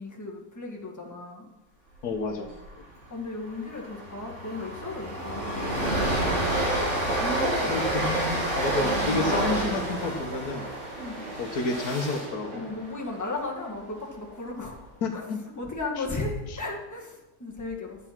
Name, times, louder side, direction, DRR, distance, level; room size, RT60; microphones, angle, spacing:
voice 1, 0.0-1.5 3.1-6.4 7.0-8.2 10.9-11.2 12.5-15.3 15.6-18.0, left 2 dB, 10° left, -2 dB, 1.7 m, -35 dB
voice 2, 2.0-2.8 7.7-10.7 11.4-12.6 15.0-15.4 16.0-16.1 16.5-16.6, left 3 dB, 75° left, 6 dB, 1.5 m, -30 dB
Train, 2.3-2.6 2.9-3.0 3.4-13.6, right 1 dB, 50° right, 3.4 m, -29 dB
sound 1, 8.7-13.5, right 1 dB, 80° right, 4.6 m, -45 dB
11.0 x 7.8 x 6.0 m, 1.0 s
omnidirectional pair, 1.6 m